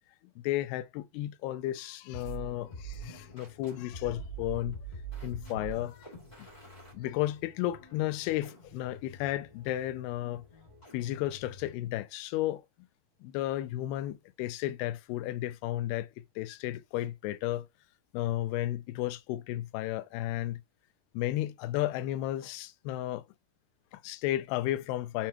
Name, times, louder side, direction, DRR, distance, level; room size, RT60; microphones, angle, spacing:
voice 1, 0.4-4.8 5.2-6.1 6.4-6.5 6.9-10.4 10.9-12.6 13.2-16.1 16.4-17.7 18.1-20.6 21.1-23.3 23.9-25.3, left 14 dB, 85° left, 2.5 m, -33 dB
sound 1, 2.1-11.8, right 4 dB, 15° left, 1.5 m, -46 dB
7.4 x 4.3 x 2.9 m
omnidirectional pair, 4.5 m